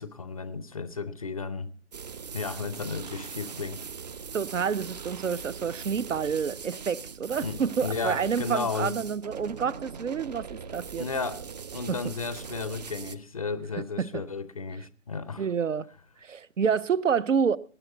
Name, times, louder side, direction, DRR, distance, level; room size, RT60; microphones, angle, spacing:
voice 1, 0.0-1.7 2.3-3.9 7.4-8.9 10.9-11.5 11.7-15.5, left 4 dB, 30° left, 0.5 m, -34 dB
sound 1, 1.9-13.2, right 6 dB, 35° right, 0.6 m, -41 dB
voice 2, 4.3-11.0 14.0-14.1 15.4-15.9 16.2-17.6, right 6 dB, 70° right, 0.8 m, -28 dB
19.0 x 10.0 x 3.9 m
figure-of-eight pair, 140°, 40 cm